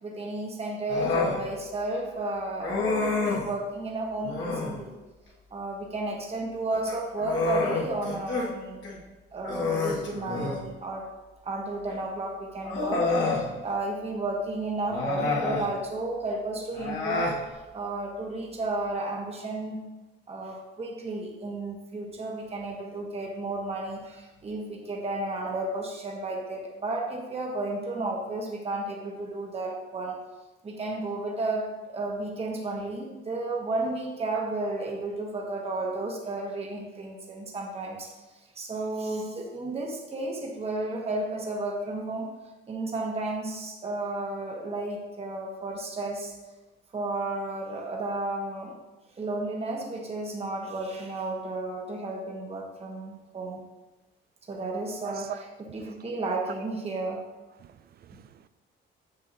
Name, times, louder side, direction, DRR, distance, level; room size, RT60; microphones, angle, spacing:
voice 1, 0.0-4.9 5.5-8.8 9.3-11.1 11.4-19.8 20.3-30.2 30.6-38.1 38.5-42.3 42.7-46.3 46.9-48.7 49.2-53.6 54.5-55.4 55.7-57.2, right 2 dB, 30° right, 0 dB, 1.1 m, -33 dB
Human voice, 0.9-1.4 2.6-3.5 4.2-4.8 6.7-8.5 8.8-9.0 9.4-10.7 11.9-12.0 12.6-13.5 14.8-15.7 16.7-17.4, left 3 dB, 70° left, 1.6 m, -28 dB
voice 2, 55.0-55.4 55.9-56.0 57.6-58.5, right 11 dB, 50° right, 13 dB, 0.4 m, -41 dB
7.0 x 6.5 x 2.7 m, 1.1 s
cardioid pair, 90°, 20 cm